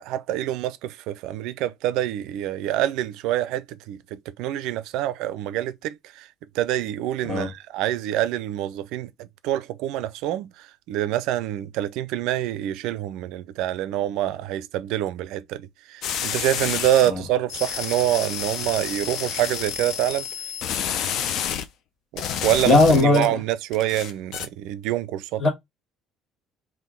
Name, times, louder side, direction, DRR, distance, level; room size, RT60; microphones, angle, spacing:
voice 1, 0.0-6.3 6.5-20.3 22.1-25.4, right 13 dB, 65° right, 0.4 m, -26 dB
sound 1, 16.0-17.1 17.5-21.7 22.2-23.3 23.7-24.5, left 8 dB, 60° left, 0.5 m, -29 dB
voice 2, 22.6-23.4 25.4-25.5, left 3 dB, 40° left, 1.4 m, -18 dB
3.6 x 2.5 x 3.6 m
figure-of-eight pair, 55°, 0 cm